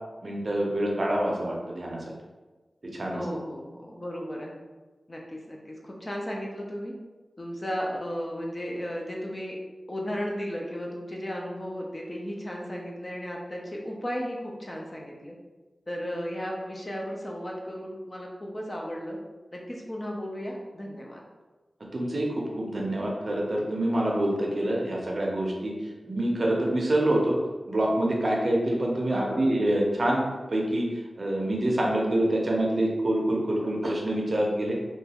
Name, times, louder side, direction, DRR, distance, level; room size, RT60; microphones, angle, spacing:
voice 1, 0.2-2.0 2.8-3.2 21.9-25.7 26.1-27.4 27.7-30.9 31.2-34.8, right 1 dB, 45° right, -2 dB, 0.6 m, -26 dB
voice 2, 3.1-4.6 5.1-6.9 7.4-9.6 9.9-15.4 15.9-19.2 19.5-21.2 29.1-29.5, equal, 30° left, -1 dB, 0.5 m, -35 dB
3.0 x 2.3 x 2.8 m, 1.2 s
wide cardioid pair, 95°, 0 cm